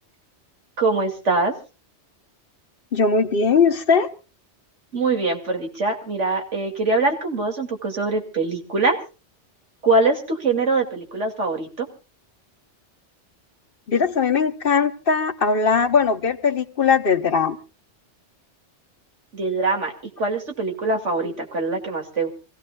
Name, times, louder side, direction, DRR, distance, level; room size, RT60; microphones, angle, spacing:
voice 1, 0.8-1.5 4.9-9.0 9.8-11.9 19.3-22.3, right 3 dB, 90° right, 2.8 m, -23 dB
voice 2, 2.9-4.1 13.9-17.6, left 5 dB, 55° left, 1.1 m, -19 dB
26.5 x 16.5 x 2.3 m
omnidirectional pair, 1.2 m